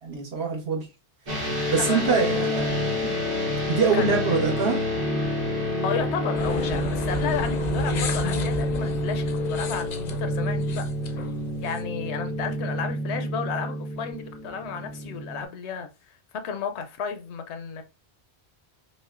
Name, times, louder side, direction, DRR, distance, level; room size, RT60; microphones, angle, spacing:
voice 1, 0.0-0.9 1.7-2.7 3.7-4.8, right 5 dB, 70° right, 1.3 m, -24 dB
sound 1, 1.3-15.4, left 1 dB, 90° right, 1.5 m, -28 dB
voice 2, 1.8-2.5 3.9-4.2 5.8-10.9 11.6-15.9 16.3-17.8, left 6 dB, 90° left, 0.9 m, -32 dB
sound 2, 6.3-11.8, left 4 dB, 55° left, 0.5 m, -33 dB
5.2 x 2.1 x 2.5 m
omnidirectional pair, 1.1 m